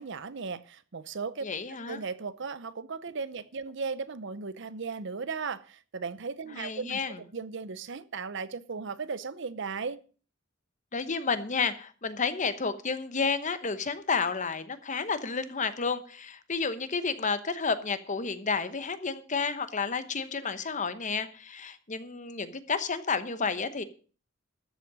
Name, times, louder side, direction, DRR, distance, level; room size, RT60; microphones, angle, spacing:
voice 1, 0.0-1.4 1.9-10.0, right 5 dB, 65° right, 0.7 m, -36 dB
voice 2, 1.4-2.0 6.6-7.2 10.9-23.8, left 5 dB, 40° left, 1.0 m, -31 dB
13.0 x 7.6 x 6.1 m
head